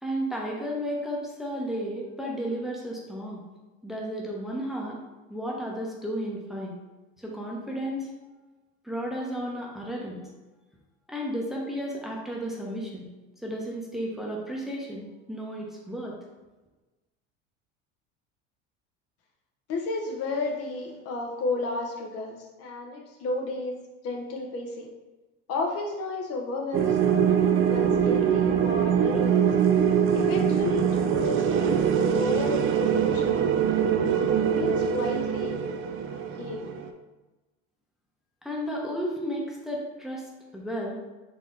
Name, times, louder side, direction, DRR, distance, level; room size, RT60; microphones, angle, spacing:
voice 1, 0.0-3.4 3.8-5.0 5.3-6.7 7.2-8.1 8.8-10.2 11.1-13.1 13.4-16.2 38.4-41.0, equal, ahead, -3 dB, 0.8 m, -33 dB
voice 2, 19.7-23.8 24.0-24.9 25.5-27.1 27.4-29.4 30.1-31.8 32.2-33.2 34.1-35.6 36.1-36.6, left 2 dB, 50° left, 1 dB, 0.8 m, -33 dB
sound 1, 26.7-36.9, right 8 dB, 45° right, 0.5 m, -23 dB
4.2 x 2.8 x 3.7 m, 1.1 s
supercardioid pair, 115°, 30 cm